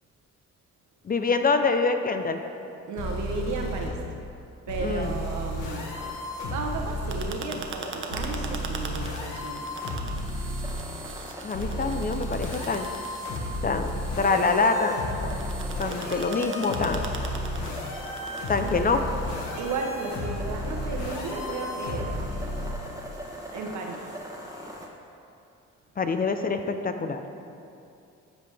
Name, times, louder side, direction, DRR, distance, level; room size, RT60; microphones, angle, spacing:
voice 1, 1.0-2.4 4.8-5.2 11.4-12.9 13.6-13.9 14.2-15.3 15.8-17.0 18.5-19.0 26.0-27.2, left 4 dB, 30° left, 7 dB, 0.5 m, -25 dB
voice 2, 2.9-4.0 4.7-5.9 6.5-9.7 11.2-11.7 18.6-19.0 19.6-22.2 23.5-24.1, right 3 dB, 70° right, 2 dB, 1.1 m, -34 dB
sound 1, 3.0-3.9 4.7-7.2 8.1-10.7 11.5-22.7, left 1 dB, 85° left, 1.4 m, -33 dB
sound 2, 5.0-24.9, equal, 10° right, 1.1 m, -42 dB
sound 3, 7.1-18.8, right 5 dB, 40° right, 0.8 m, -41 dB
13.0 x 5.1 x 3.4 m, 2.6 s
cardioid pair, 90°, 30 cm